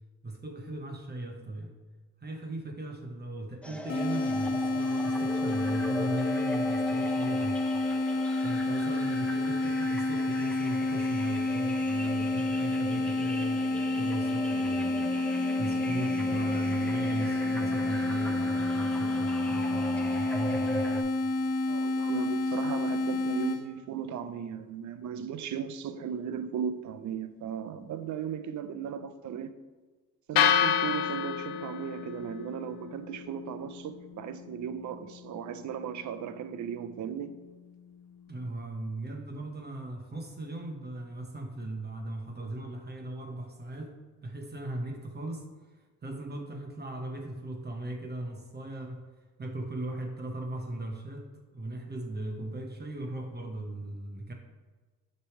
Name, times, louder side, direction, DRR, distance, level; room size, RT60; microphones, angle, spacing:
voice 1, 0.2-1.7 2.2-7.6 8.4-13.6 14.0-15.1 15.6-21.1 38.3-43.9 44.2-45.5 46.0-49.0 49.4-51.3 51.5-54.3, right 2 dB, 30° right, 2 dB, 1.1 m, -38 dB
sound 1, 3.6-21.0, left 1 dB, 5° left, 0.7 m, -39 dB
sound 2, 3.9-23.6, left 2 dB, 45° left, 1.2 m, -29 dB
voice 2, 21.7-29.5 30.3-37.3, right 8 dB, 60° right, 12 dB, 0.6 m, -36 dB
sound 3, 30.4-38.5, left 9 dB, 85° left, 0.6 m, -32 dB
6.6 x 3.3 x 5.9 m, 1.3 s
cardioid pair, 80°, 33 cm